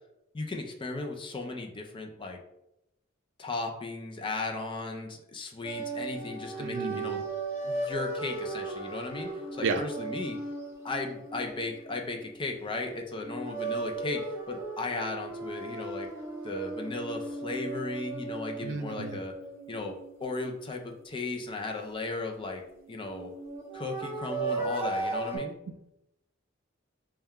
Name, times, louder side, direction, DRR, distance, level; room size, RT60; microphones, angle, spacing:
voice 1, 0.3-2.4 3.4-7.2 7.6-10.4 10.8-16.1 16.4-19.3 19.7-22.6 22.9-23.3 23.7-25.6, left 3 dB, 25° left, 2 dB, 0.5 m, -36 dB
sound 1, 5.6-12.7 13.2-21.0 22.7-25.4, right 3 dB, 10° right, 0.7 m, -37 dB
voice 2, 6.5-7.2 9.6-9.8 18.6-19.1, right 4 dB, 65° right, 8 dB, 0.4 m, -32 dB
4.2 x 2.3 x 3.5 m, 0.85 s
head